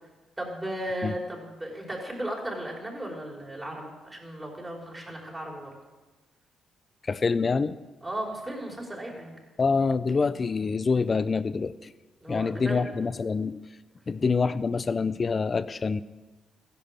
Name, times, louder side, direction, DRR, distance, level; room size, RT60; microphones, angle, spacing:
voice 1, 0.4-5.7 8.0-9.4 12.2-12.9, right 1 dB, 15° right, -1 dB, 5.1 m, -35 dB
voice 2, 7.1-7.7 9.6-11.9 12.3-13.6 14.1-16.0, left 4 dB, 35° left, 15 dB, 0.7 m, -26 dB
15.5 x 11.0 x 7.6 m, 1.2 s
cardioid pair, 90°, 0 cm